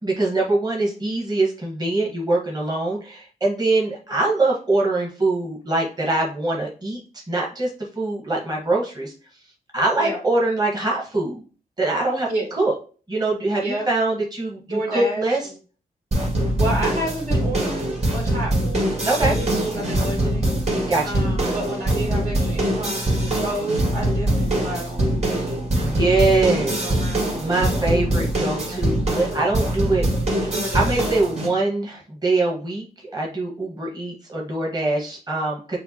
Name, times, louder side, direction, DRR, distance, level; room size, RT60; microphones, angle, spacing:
voice 1, 0.0-9.1 9.7-11.4 11.8-12.3 12.6-12.7 13.1-15.4 19.1-19.3 20.9-21.2 25.8-26.8 27.4-30.0 30.7-35.8, right 2 dB, 25° right, -3 dB, 1.5 m, -23 dB
voice 2, 14.7-15.3 16.6-20.5 21.0-27.6 28.6-28.8 30.4-31.0, right 1 dB, 65° right, -5 dB, 2.1 m, -31 dB
sound 1, 16.1-31.5, right 1 dB, 40° right, 2.2 m, -23 dB
6.7 x 2.3 x 2.9 m, 0.37 s
cardioid pair, 70°, 16 cm